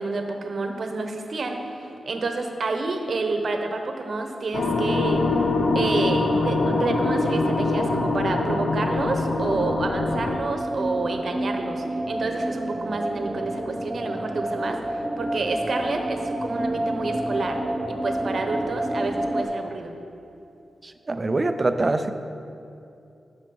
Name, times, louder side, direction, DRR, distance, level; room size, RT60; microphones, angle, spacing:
voice 1, 0.0-5.3 5.7-17.6 17.9-19.9, right 3 dB, 60° right, 4 dB, 1.0 m, -29 dB
sound 1, 4.5-10.4, left 2 dB, 85° left, 0.8 m, -23 dB
sound 2, 6.3-19.4, right 1 dB, 10° right, 0.9 m, -30 dB
voice 2, 20.8-22.1, right 2 dB, 35° right, 9 dB, 0.5 m, -24 dB
10.5 x 6.4 x 5.5 m, 2.7 s
cardioid pair, 80°, 0 cm